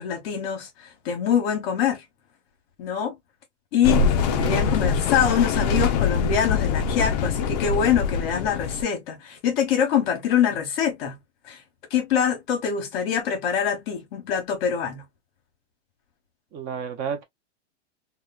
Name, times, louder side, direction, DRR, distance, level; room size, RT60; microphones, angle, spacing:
voice 1, 0.0-2.0 2.8-3.2 3.7-11.1 11.5-11.6 11.9-15.0, left 8 dB, 55° left, 1.0 m, -24 dB
sound 1, 3.8-8.8, left 5 dB, 40° left, 0.4 m, -23 dB
voice 2, 4.2-4.8 16.5-17.2, right 7 dB, 25° right, 0.5 m, -32 dB
3.1 x 2.2 x 2.3 m
supercardioid pair, 155°, 36 cm